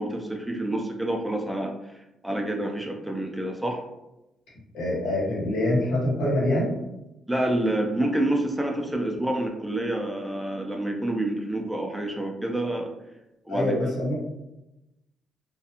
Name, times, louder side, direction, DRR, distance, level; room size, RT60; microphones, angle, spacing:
voice 1, 0.0-3.8 7.3-12.9 13.4-13.7, right 1 dB, 5° right, 1 dB, 0.4 m, -28 dB
voice 2, 4.7-6.7 13.5-14.1, left 1 dB, 85° left, -6 dB, 1.2 m, -25 dB
2.4 x 2.3 x 2.8 m, 0.92 s
cardioid pair, 90°, 0 cm